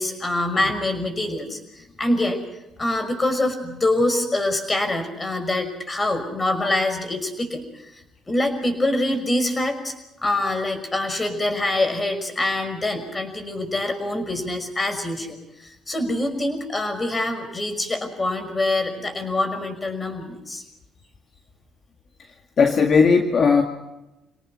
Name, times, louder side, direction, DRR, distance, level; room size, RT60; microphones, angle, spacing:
voice 1, 0.0-2.4 2.8-7.6 8.3-9.9 10.2-20.6, left 1 dB, 20° left, 7 dB, 5.7 m, -25 dB
voice 2, 22.6-23.6, left 5 dB, 50° left, 3 dB, 2.1 m, -16 dB
29.0 x 18.5 x 6.0 m, 0.96 s
cardioid pair, 95°, 0 cm